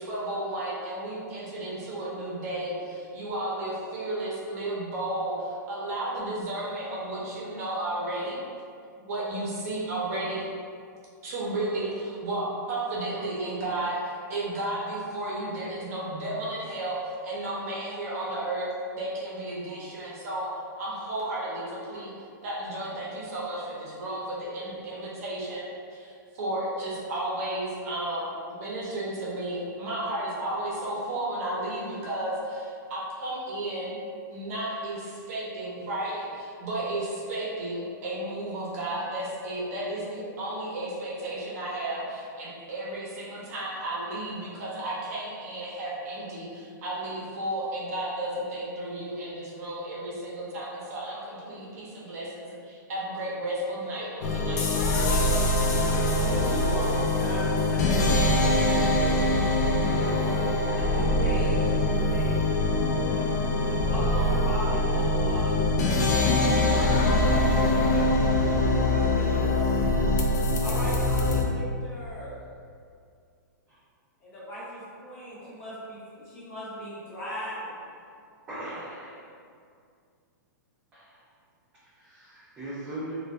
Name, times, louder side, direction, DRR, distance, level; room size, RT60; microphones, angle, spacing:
voice 1, 0.0-8.4 9.0-10.5 11.2-18.7 18.9-20.5 20.8-22.1 22.4-28.3 28.6-33.9 34.3-54.7 55.0-55.3, right 1 dB, 50° right, -6 dB, 0.7 m, -33 dB
sound 1, 54.2-71.4, left 2 dB, 55° left, 0.3 m, -23 dB
voice 2, 55.7-60.2 60.7-62.5 63.8-65.6 66.0-69.7 70.6-72.4 74.2-77.8, right 1 dB, 25° left, -10 dB, 0.9 m, -39 dB
voice 3, 78.5-79.3 80.9-81.2 81.8-83.1, right 1 dB, 15° right, -11 dB, 0.4 m, -39 dB
2.5 x 2.2 x 2.2 m, 2.3 s
hypercardioid pair, 155°, 11 cm